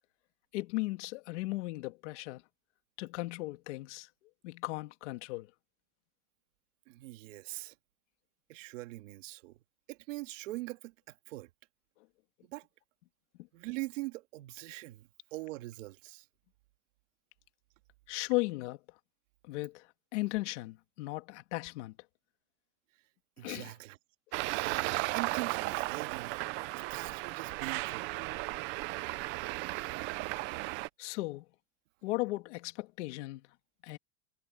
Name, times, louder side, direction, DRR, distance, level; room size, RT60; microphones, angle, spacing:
voice 1, 0.5-2.4 3.0-4.1 4.4-5.5 18.1-18.8 19.4-21.9 23.4-23.7 31.0-31.4 32.0-33.5 33.8-34.0, left 21 dB, 70° left, 2.5 m, -36 dB
voice 2, 6.9-7.7 8.5-9.6 9.9-11.5 12.5-12.7 13.5-16.3 23.4-24.0 24.4-26.4 26.8-28.1, right 20 dB, 85° right, 2.0 m, -42 dB
Traffic noise roadway noise, 24.3-30.9, right 21 dB, 30° right, 0.5 m, -35 dB
supercardioid pair, 175°, 37 cm